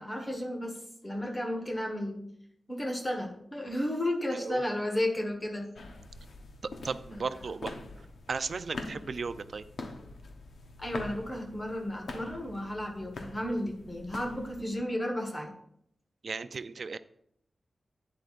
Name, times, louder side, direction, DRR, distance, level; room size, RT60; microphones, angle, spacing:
voice 1, 0.0-2.3 2.7-5.7 7.1-7.4 10.8-15.5, left 1 dB, 15° left, 2 dB, 1.4 m, -33 dB
sound 1, 5.8-14.7, left 3 dB, 80° left, 1.0 m, -44 dB
voice 2, 6.8-7.7 8.3-9.6 16.2-17.0, right 4 dB, 55° right, 12 dB, 0.4 m, -35 dB
11.5 x 8.9 x 2.5 m, 0.71 s
wide cardioid pair, 175°, 0 cm